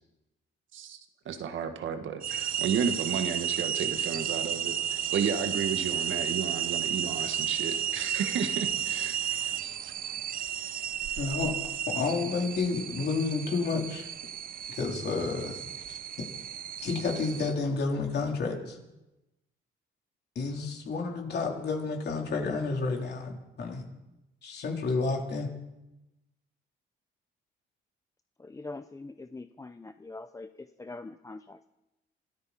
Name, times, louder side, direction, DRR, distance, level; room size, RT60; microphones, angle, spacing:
voice 1, 1.3-9.9, right 7 dB, 75° right, 7 dB, 1.6 m, -33 dB
sound 1, 2.2-17.5, right 9 dB, 45° right, 0.5 m, -33 dB
voice 2, 11.2-11.5 11.9-14.1 14.7-15.6 15.9-16.0 16.8-18.8 20.4-23.8 24.4-25.5, left 4 dB, 55° left, 1 dB, 3.6 m, -30 dB
voice 3, 28.4-31.7, left 3 dB, 15° left, 10 dB, 0.6 m, -43 dB
25.0 x 13.5 x 4.3 m, 0.96 s
cardioid pair, 90°, 20 cm